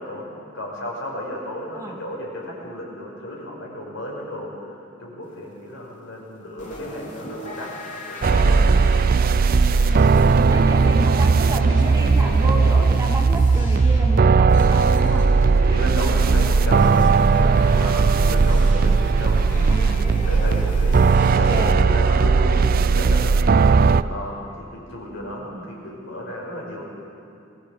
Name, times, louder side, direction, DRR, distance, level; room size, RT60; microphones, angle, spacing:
voice 1, 0.0-8.6 15.3-17.0 17.3-19.7 20.0-26.9, left 1 dB, 65° left, -2 dB, 5.8 m, -34 dB
sound 1, 6.6-22.3, left 1 dB, 40° left, 3.4 m, -37 dB
sound 2, 8.2-24.0, right 4 dB, 45° right, 0.4 m, -17 dB
voice 2, 10.3-15.2 19.7-20.1 21.4-21.8 25.5-25.7, right 1 dB, 15° right, 1 dB, 1.9 m, -31 dB
22.0 x 17.0 x 7.7 m, 2.6 s
head